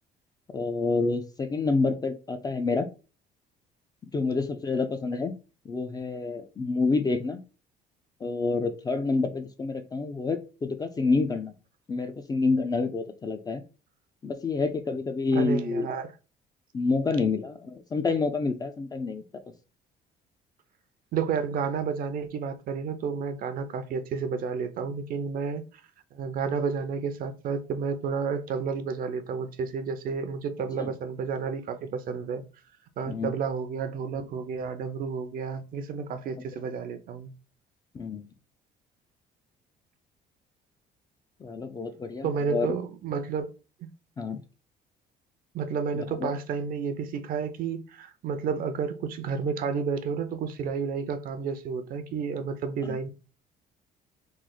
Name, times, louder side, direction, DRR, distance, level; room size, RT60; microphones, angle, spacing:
voice 1, 0.5-2.9 4.1-5.3 5.7-7.4 8.2-11.5 11.9-13.6 14.2-15.9 16.7-19.2 30.8-30.9 33.1-33.3 37.9-38.2 41.4-42.8 44.2-44.4 45.9-46.3 52.8-53.0, left 3 dB, 25° left, 0.3 m, -28 dB
voice 2, 15.3-16.1 21.1-25.8 26.1-32.4 33.0-37.3 42.2-43.5 45.5-53.1, right 5 dB, 55° right, 0.5 m, -31 dB
3.2 x 2.0 x 3.7 m
cardioid pair, 110°, 17 cm